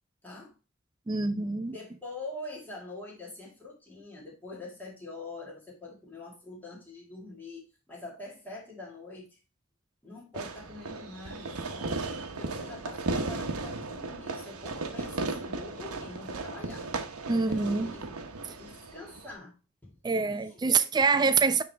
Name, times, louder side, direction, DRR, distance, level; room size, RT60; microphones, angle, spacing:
voice 1, 0.2-0.5 1.7-9.4 10.0-16.9 17.3-18.1 18.6-19.5 19.8-20.9 21.2-21.3, left 2 dB, 10° left, 1.9 m, -45 dB
voice 2, 1.1-1.8 17.3-17.9 18.5-18.6 20.0-21.6, right 4 dB, 20° right, 0.4 m, -25 dB
Fireworks, 10.3-19.4, right 3 dB, 85° right, 0.9 m, -36 dB
9.4 x 3.3 x 3.4 m
head